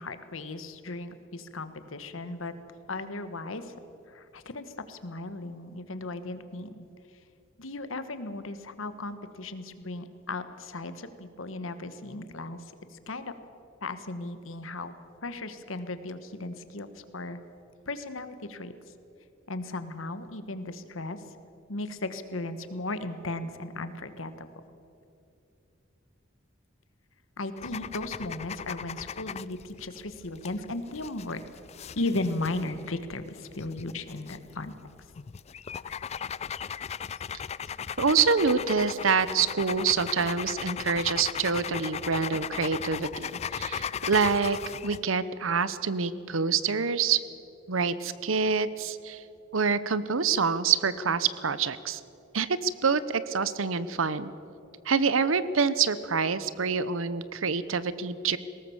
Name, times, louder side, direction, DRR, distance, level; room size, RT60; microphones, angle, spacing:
voice 1, 0.0-2.5 2.9-3.7 4.1-6.9 7.6-13.3 13.8-17.4 17.9-18.7 19.5-21.2 21.7-24.5 27.4-31.4 32.0-34.7, left 2 dB, 85° left, 11 dB, 1.4 m, -36 dB
sound 1, 27.6-45.0, left 7 dB, 35° left, 0.4 m, -37 dB
voice 2, 38.0-44.6 44.8-47.2 47.7-49.2 49.5-52.0 52.3-54.3 54.9-58.4, right 5 dB, 85° right, 15 dB, 0.9 m, -26 dB
20.0 x 18.0 x 7.2 m, 2.8 s
head